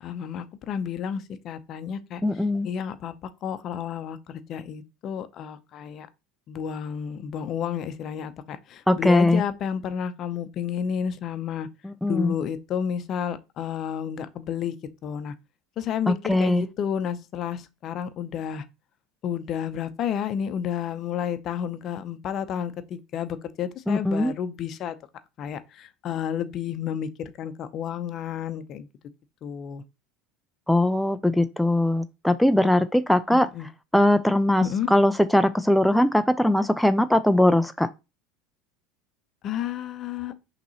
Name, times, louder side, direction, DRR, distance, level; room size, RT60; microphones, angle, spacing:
voice 1, 0.0-6.1 6.5-11.7 12.1-14.8 15.0-15.3 15.8-18.6 19.2-24.9 25.4-28.9 29.4-29.8 33.3-33.7 34.6-34.9 39.4-40.3, left 8 dB, 50° left, 0.6 m, -31 dB
voice 2, 2.2-2.7 8.9-9.4 11.8-12.3 16.1-16.6 23.9-24.3 30.7-33.5 33.9-37.9, left 1 dB, 5° left, 0.3 m, -21 dB
5.9 x 2.9 x 2.8 m
hypercardioid pair, 80°, 0 cm